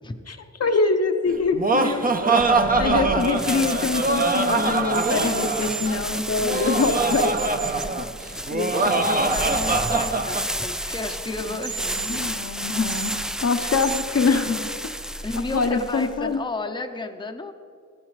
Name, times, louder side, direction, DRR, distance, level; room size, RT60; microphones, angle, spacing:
voice 1, 0.3-7.3 7.7-8.0 8.5-9.1 11.5-14.7 15.5-16.4, left 4 dB, 55° left, 5 dB, 0.9 m, -25 dB
Laughter, 1.3-10.5, right 3 dB, 30° right, 0.7 m, -23 dB
sound 1, 3.2-16.3, equal, ahead, 0.3 m, -32 dB
sound 2, 3.7-3.8 4.9-5.9 6.8-7.8 9.3-10.1 11.6-12.2 12.9-13.1 13.8-14.0, right 7 dB, 75° right, 0.7 m, -33 dB
voice 2, 8.7-11.9 15.2-17.5, left 2 dB, 15° left, 5 dB, 0.7 m, -32 dB
16.0 x 9.5 x 3.2 m, 2.3 s
wide cardioid pair, 80°, 30 cm